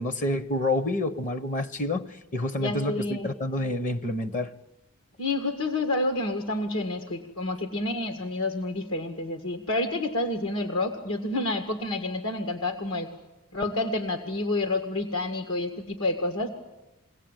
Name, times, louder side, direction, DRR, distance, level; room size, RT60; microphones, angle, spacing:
voice 1, 0.0-4.5, left 1 dB, 35° left, 0.9 m, -28 dB
voice 2, 2.6-3.3 5.2-13.1 13.5-16.5, left 2 dB, 75° left, 1.9 m, -29 dB
23.5 x 17.0 x 9.1 m
head